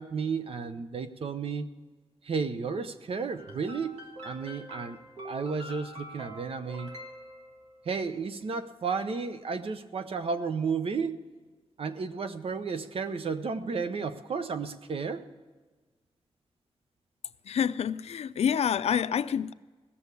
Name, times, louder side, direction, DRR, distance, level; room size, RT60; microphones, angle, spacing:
voice 1, 0.0-1.7 2.2-5.0 5.2-6.9 7.8-11.2 11.8-15.3, right 5 dB, 60° right, 0.8 m, -33 dB
sound 1, 3.4-8.0, right 1 dB, 90° right, 1.9 m, -45 dB
voice 2, 17.5-19.5, left 8 dB, 80° left, 0.4 m, -27 dB
17.0 x 7.0 x 8.2 m
wide cardioid pair, 135°, 11 cm